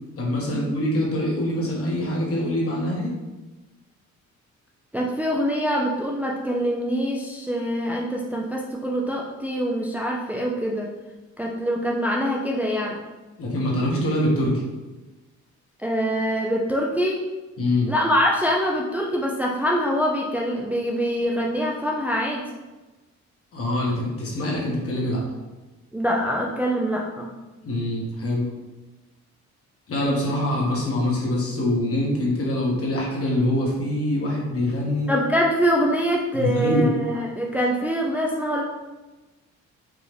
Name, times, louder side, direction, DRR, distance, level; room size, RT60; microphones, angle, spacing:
voice 1, 0.2-3.2 13.4-14.6 17.6-17.9 23.5-25.2 27.6-28.5 29.9-35.1 36.3-36.8, left 1 dB, 50° left, -3 dB, 1.3 m, -24 dB
voice 2, 4.9-10.9 11.4-13.0 15.8-17.2 17.9-22.4 25.9-27.3 35.1-38.6, equal, 5° right, -2 dB, 0.5 m, -24 dB
4.9 x 2.4 x 3.3 m, 1.2 s
cardioid pair, 90°, 30 cm